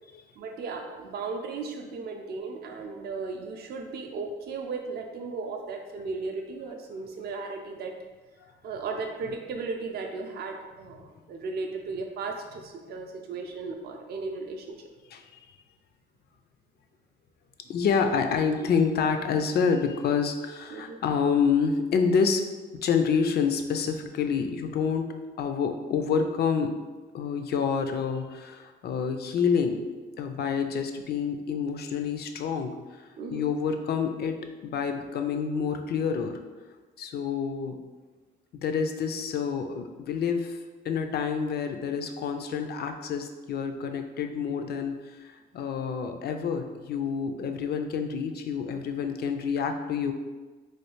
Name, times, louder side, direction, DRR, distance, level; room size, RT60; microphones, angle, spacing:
voice 1, 0.4-8.0 8.6-14.8 20.7-21.0 33.2-33.5, right 4 dB, 55° right, 3 dB, 0.4 m, -36 dB
voice 2, 17.7-22.4 22.8-26.7 27.1-29.9 30.2-32.7 33.3-36.4 37.0-37.8 38.5-40.6 40.8-50.1, left 6 dB, 55° left, 6 dB, 0.4 m, -28 dB
3.2 x 2.3 x 3.1 m, 1.3 s
cardioid pair, 90°, 20 cm